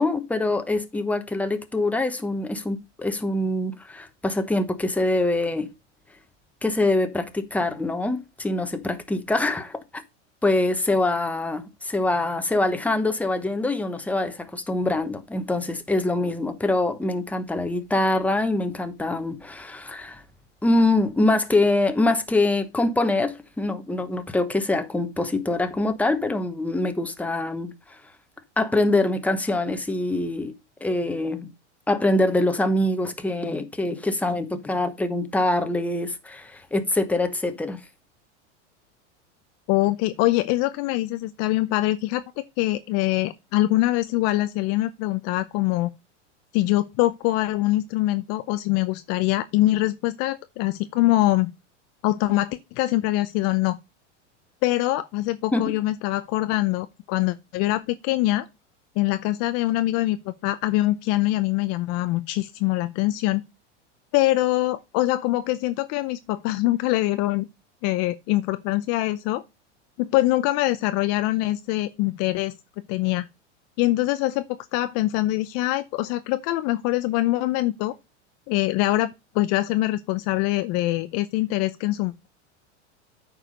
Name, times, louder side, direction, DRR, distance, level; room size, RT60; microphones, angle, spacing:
voice 1, 0.0-5.7 6.6-10.0 10.4-20.2 20.6-28.0 28.6-30.5 30.8-31.5 31.9-37.8 55.5-55.7, left 2 dB, 5° left, 1.0 m, -24 dB
voice 2, 39.7-42.2 42.6-45.9 46.5-51.5 52.0-53.8 54.6-58.5 59.0-63.4 64.1-67.4 67.8-69.4 70.0-72.6 72.9-73.3 73.8-78.0 78.5-82.3, left 17 dB, 45° left, 0.6 m, -23 dB
9.0 x 4.9 x 5.0 m
hypercardioid pair, 115°, 36 cm